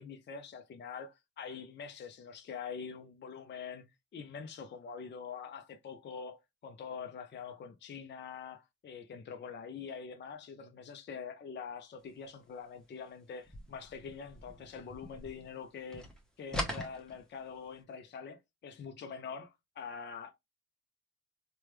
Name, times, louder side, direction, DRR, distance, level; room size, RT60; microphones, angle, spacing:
voice 1, 0.0-16.1 16.4-20.3, left 6 dB, 35° left, 0.5 m, -45 dB
sound 1, 13.4-15.7 15.9-17.7, left 1 dB, ahead, 0.9 m, -41 dB
3.2 x 2.2 x 3.1 m
cardioid pair, 90°, 30 cm